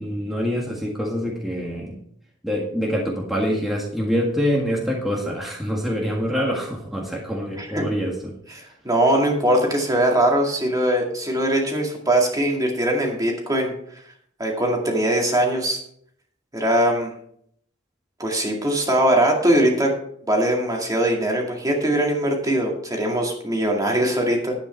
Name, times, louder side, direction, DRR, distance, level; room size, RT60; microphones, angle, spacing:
voice 1, 0.0-2.0 2.4-8.3, equal, ahead, -3 dB, 1.8 m, -25 dB
voice 2, 7.5-7.9 8.5-13.7 14.4-15.8 16.5-17.1 18.2-19.9 20.3-24.6, right 1 dB, 20° right, 0 dB, 2.1 m, -21 dB
11.0 x 8.9 x 4.5 m, 0.66 s
head